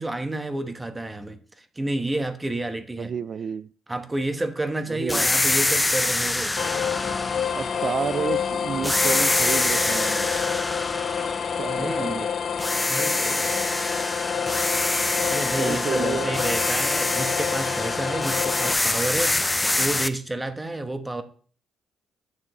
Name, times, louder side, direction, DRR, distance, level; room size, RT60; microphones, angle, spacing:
voice 1, 0.0-3.1 3.9-6.5 11.8-12.2 12.9-13.7 15.2-21.2, right 2 dB, 15° right, 1.1 m, -30 dB
voice 2, 3.0-3.7 4.9-5.4 7.5-10.4 11.6-12.3 15.2-16.4, right 7 dB, 55° right, 0.4 m, -31 dB
sound 1, 5.1-8.4 8.8-12.2 12.6-20.1, left 2 dB, 15° left, 0.5 m, -26 dB
sound 2, 6.6-18.7, left 7 dB, 55° left, 1.0 m, -28 dB
9.6 x 6.9 x 3.0 m
cardioid pair, 90°, 0 cm